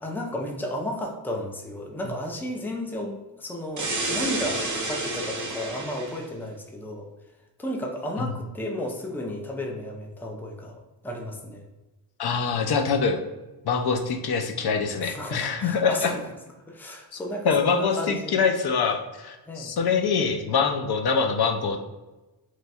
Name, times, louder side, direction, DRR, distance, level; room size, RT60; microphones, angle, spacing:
voice 1, 0.0-7.1 7.6-10.8 11.0-11.6 15.0-16.1 16.7-18.4 19.5-19.7, left 1 dB, 5° left, 1 dB, 0.5 m, -33 dB
sound 1, 3.8-6.2, right 2 dB, 45° right, 0.8 m, -30 dB
voice 2, 12.2-13.2 13.6-16.1 17.1-17.2 17.4-21.8, left 5 dB, 65° left, 5 dB, 0.5 m, -24 dB
3.0 x 2.3 x 4.1 m, 1.1 s
wide cardioid pair, 105°, 42 cm